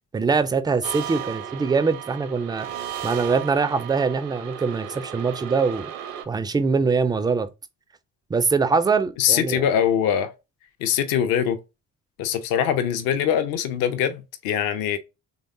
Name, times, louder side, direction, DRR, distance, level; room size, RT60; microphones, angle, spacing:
voice 1, 0.1-2.7 3.0-5.9 6.3-7.5 8.3-9.7, right 4 dB, 10° right, 0.3 m, -23 dB
sound 1, 0.8-6.2, right 10 dB, 65° right, 0.7 m, -35 dB
voice 2, 9.2-10.3 10.8-11.6 12.2-15.0, left 9 dB, 55° left, 0.6 m, -22 dB
3.9 x 3.3 x 2.6 m
figure-of-eight pair, 40°, 43 cm